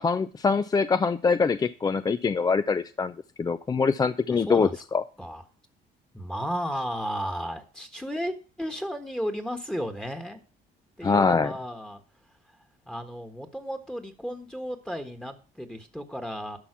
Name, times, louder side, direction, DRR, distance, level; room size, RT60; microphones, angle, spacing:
voice 1, 0.0-3.1 3.4-5.0 11.0-11.5, left 5 dB, 25° left, 13 dB, 0.5 m, -24 dB
voice 2, 4.3-4.8 5.2-5.4 6.1-10.4 11.0-12.0 12.5-12.6 12.9-16.6, equal, 5° left, 6 dB, 1.4 m, -34 dB
11.5 x 5.8 x 6.0 m, 0.39 s
cardioid pair, 110°, 17 cm